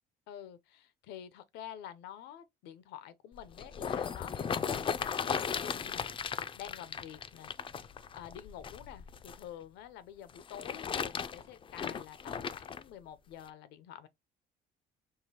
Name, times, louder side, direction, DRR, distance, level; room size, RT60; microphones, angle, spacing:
voice 1, 0.3-6.1 6.5-7.5 8.1-14.1, left 10 dB, 85° left, 0.6 m, -48 dB
sound 1, 3.3-9.4 10.3-12.8 13.5-13.6, left 7 dB, 30° left, 0.4 m, -36 dB
4.7 x 2.9 x 2.8 m
cardioid pair, 110°, 17 cm